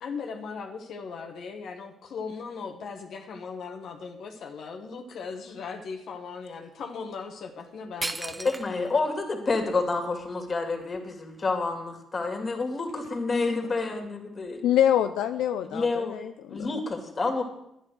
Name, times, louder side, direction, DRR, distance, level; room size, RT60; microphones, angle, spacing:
voice 1, 0.0-8.5, left 5 dB, 65° left, 3 dB, 1.4 m, -38 dB
sound 1, 7.6-7.7 8.0-9.0 9.5-9.6 10.2-11.6, right 2 dB, 20° right, 0.6 m, -36 dB
voice 2, 8.4-14.6 15.6-17.4, left 3 dB, 35° left, 4 dB, 2.6 m, -29 dB
voice 3, 14.6-16.7, left 10 dB, 90° left, 8 dB, 0.5 m, -25 dB
11.0 x 9.8 x 6.3 m, 0.80 s
cardioid pair, 90°, 0 cm